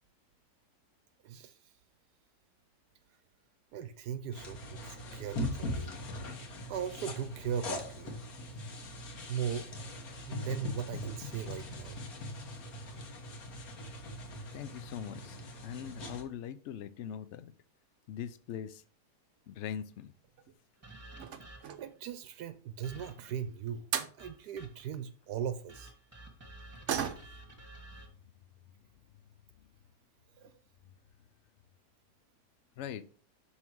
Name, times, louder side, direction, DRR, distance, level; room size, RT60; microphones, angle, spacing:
voice 1, 1.2-1.6 3.7-6.0 6.7-8.2 9.3-9.7 10.3-12.0 21.8-23.9 24.2-25.9, right 8 dB, 75° right, 1.1 m, -38 dB
sound 1, 4.3-16.2, left 1 dB, 60° left, 1.7 m, -41 dB
voice 2, 14.5-15.4 15.6-17.5 18.1-18.8 19.5-20.1 26.9-27.0 32.8-33.0, left 9 dB, 80° left, 0.6 m, -41 dB
sound 2, 20.1-20.6 21.1-22.0 23.5-23.6 23.9-24.2 26.9-27.5 27.9-28.0 28.4-28.5 29.3-29.4 29.7-29.8 30.3-30.6 30.9-31.0 31.3-31.4, right 8 dB, 55° right, 0.9 m, -37 dB
sound 3, 20.8-21.9 22.8-23.4 24.2-25.0 25.7-28.1, right 2 dB, 10° right, 1.5 m, -52 dB
6.4 x 5.6 x 4.6 m
omnidirectional pair, 1.8 m